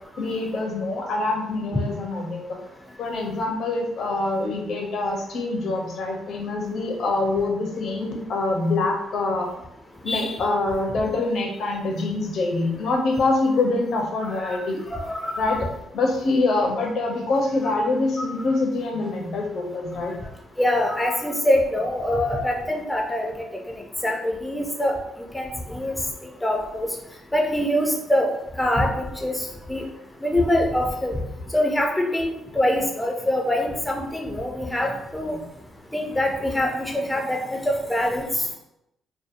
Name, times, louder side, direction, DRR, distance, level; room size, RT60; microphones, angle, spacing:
voice 1, 0.2-2.4 3.0-9.5 10.0-14.8 15.3-15.6 15.9-20.1, left 2 dB, 65° left, 2 dB, 0.5 m, -25 dB
voice 2, 10.1-10.5 14.2-15.6 18.2-18.3 20.6-23.4 23.7-26.0 26.2-26.9 27.3-29.8 30.2-31.2 31.5-35.4 35.9-38.5, left 1 dB, 10° left, 1 dB, 0.4 m, -24 dB
2.7 x 2.1 x 2.4 m, 0.85 s
cardioid pair, 90°, 0 cm